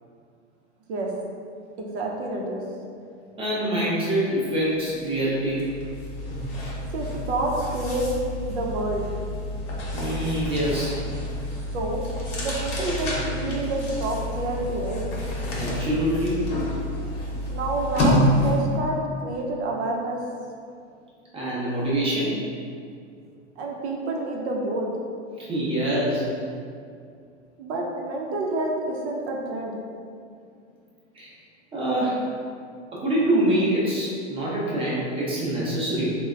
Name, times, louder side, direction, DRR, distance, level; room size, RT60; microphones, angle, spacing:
voice 1, 1.8-2.6 6.9-8.1 8.5-9.1 11.7-12.0 12.4-15.0 17.5-20.2 23.6-24.9 27.6-29.8, right 2 dB, 65° right, -1 dB, 0.6 m, -28 dB
voice 2, 3.4-5.6 9.9-11.0 15.5-16.4 21.3-22.3 25.4-26.2 31.1-31.3 31.7-32.2 32.9-36.2, right 1 dB, 15° right, -7 dB, 0.6 m, -25 dB
sound 1, 4.9-5.0 5.3-18.7, left 1 dB, 60° left, 0.9 m, -28 dB
3.3 x 2.1 x 2.3 m, 2.3 s
hypercardioid pair, 120°, 36 cm